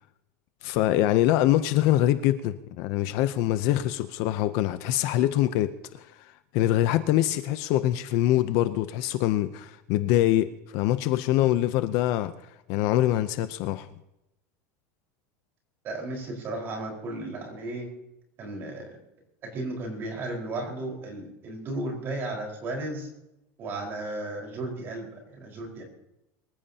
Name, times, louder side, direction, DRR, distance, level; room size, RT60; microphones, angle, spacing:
voice 1, 0.6-6.1 6.5-12.3 12.7-13.9, left 14 dB, 40° left, 0.6 m, -24 dB
voice 2, 15.8-17.9 18.4-19.0 19.4-23.1 23.6-25.8, right 2 dB, 25° right, 4.6 m, -34 dB
24.5 x 14.5 x 2.8 m
supercardioid pair, 175°, 8 cm